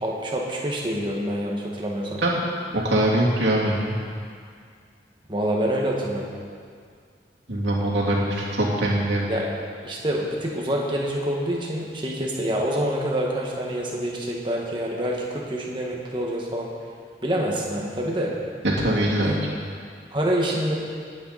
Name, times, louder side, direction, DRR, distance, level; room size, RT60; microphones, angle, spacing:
voice 1, 0.0-2.2 5.3-6.3 9.3-9.5 9.8-16.7 17.2-18.3 19.2-19.4 20.1-20.8, right 1 dB, 25° right, -2 dB, 1.8 m, -26 dB
voice 2, 2.7-3.9 7.5-9.3 18.8-19.3, right 1 dB, 85° right, -4 dB, 2.8 m, -22 dB
19.0 x 9.2 x 4.2 m, 2.2 s
head